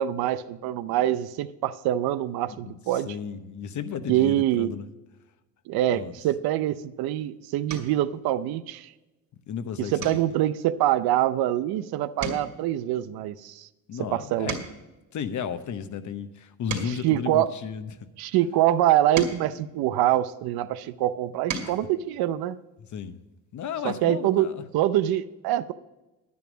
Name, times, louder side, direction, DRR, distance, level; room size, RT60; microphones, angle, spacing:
voice 1, 0.0-3.1 4.1-4.7 5.7-8.9 9.8-13.7 14.0-14.6 17.0-17.5 18.2-22.6 23.8-25.7, right 13 dB, 85° right, 14 dB, 0.6 m, -25 dB
voice 2, 2.5-4.9 5.9-6.2 9.5-10.2 13.9-14.6 15.1-18.0 22.9-23.2 23.5-24.6, left 7 dB, 55° left, 11 dB, 0.9 m, -34 dB
sound 1, 6.8-7.1 7.7-8.1 8.6-8.9 9.2-9.4 10.0-11.8 12.1-15.0 15.6-18.1 18.7-20.6 21.1-21.9 23.2-23.3 23.6-23.8, right 4 dB, 50° right, 2.3 m, -39 dB
10.5 x 9.6 x 5.0 m, 1.1 s
cardioid pair, 105°, 36 cm